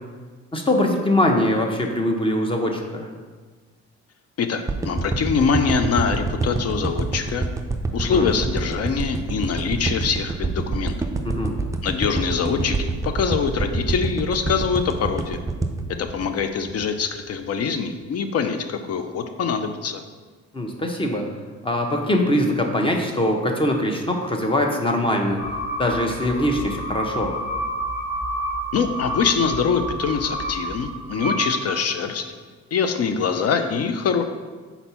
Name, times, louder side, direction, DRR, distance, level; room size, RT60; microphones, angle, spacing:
voice 1, 0.5-3.1 8.0-8.3 11.2-11.6 20.5-21.3 21.6-25.4 25.8-27.3, left 1 dB, 15° left, 2 dB, 0.9 m, -22 dB
voice 2, 4.4-7.5 7.9-10.9 11.8-15.4 16.0-20.0 28.7-32.2 32.7-34.2, left 6 dB, 55° left, 8 dB, 0.6 m, -24 dB
sound 1, 4.7-17.0 17.4-17.5, right 3 dB, 10° right, 0.4 m, -26 dB
sound 2, 25.4-32.1, right 1 dB, 75° left, 1.5 m, -29 dB
4.3 x 4.1 x 5.6 m, 1.4 s
cardioid pair, 90°, 30 cm